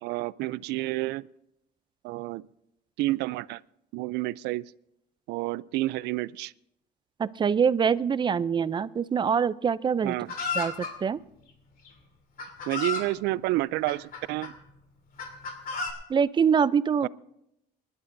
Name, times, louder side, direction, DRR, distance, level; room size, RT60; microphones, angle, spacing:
voice 1, 0.0-1.3 2.0-2.4 3.0-3.6 3.9-4.7 5.3-6.5 10.0-10.3 12.7-14.5 17.0-17.1, right 18 dB, 85° right, 0.4 m, -29 dB
voice 2, 7.2-10.2 10.5-11.2 16.1-17.1, right 7 dB, 25° right, 0.5 m, -24 dB
Chicken rooster, 10.3-10.9 11.9-12.0 12.4-13.1 13.9-14.5 15.2-15.9, left 4 dB, 60° left, 3.0 m, -32 dB
28.5 x 11.5 x 2.7 m
cardioid pair, 110°, 17 cm